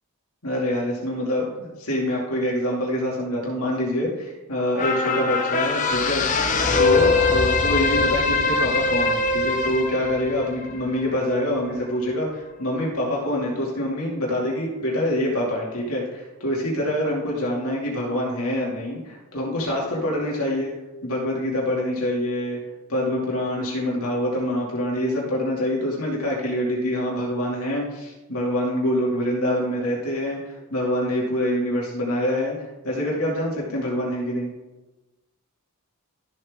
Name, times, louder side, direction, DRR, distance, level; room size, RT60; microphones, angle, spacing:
voice 1, 0.4-6.2 6.8-20.7 21.0-22.6 22.9-32.5 32.8-34.5, left 1 dB, 85° left, -3 dB, 2.6 m, -25 dB
sound 1, 4.8-11.4 11.8-11.9, left 3 dB, 35° left, 0.9 m, -22 dB
13.5 x 7.6 x 3.7 m, 1.1 s
head